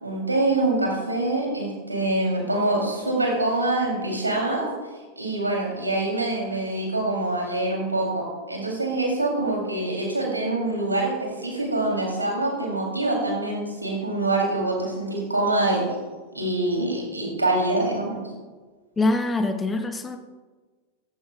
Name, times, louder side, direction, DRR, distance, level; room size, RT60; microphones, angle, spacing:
voice 1, 0.0-4.7 5.2-15.8 16.3-18.2, right 2 dB, 80° right, -1 dB, 3.6 m, -25 dB
voice 2, 19.0-20.2, left 2 dB, 15° left, 8 dB, 1.0 m, -24 dB
16.0 x 14.5 x 2.6 m, 1.4 s
figure-of-eight pair, 90°, 0 cm